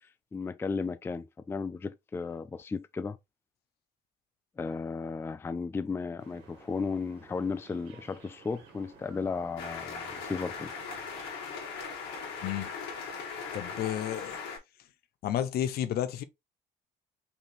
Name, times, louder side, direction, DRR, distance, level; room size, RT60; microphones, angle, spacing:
voice 1, 0.0-3.2 4.6-10.7, left 4 dB, 15° left, 0.3 m, -35 dB
sound 1, 6.2-11.3, right 5 dB, 90° right, 2.1 m, -55 dB
sound 2, 9.6-14.6, left 5 dB, 85° left, 2.6 m, -39 dB
voice 2, 12.4-12.7 13.5-14.4 15.2-16.2, left 11 dB, 65° left, 0.8 m, -31 dB
5.5 x 3.2 x 2.3 m
cardioid pair, 110°, 17 cm